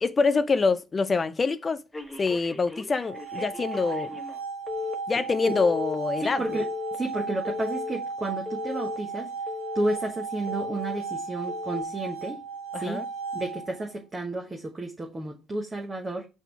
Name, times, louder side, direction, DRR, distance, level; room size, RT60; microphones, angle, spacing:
voice 1, 0.0-1.8 2.2-4.1 5.1-6.4 12.7-13.0, left 4 dB, 30° left, 0.6 m, -25 dB
Telephone, 1.9-4.4 4.7-4.9 5.4-5.9 6.4-7.0 7.4-8.0 8.5-9.0 9.5-10.0 10.5-11.0 11.5-11.8, left 6 dB, 10° left, 1.4 m, -36 dB
sound 1, 2.9-13.9, right 4 dB, 70° right, 1.2 m, -35 dB
voice 2, 6.2-9.3 9.7-12.4 12.8-13.0 13.3-16.3, right 2 dB, 25° right, 1.3 m, -32 dB
5.7 x 3.6 x 5.9 m
figure-of-eight pair, 55°, 0 cm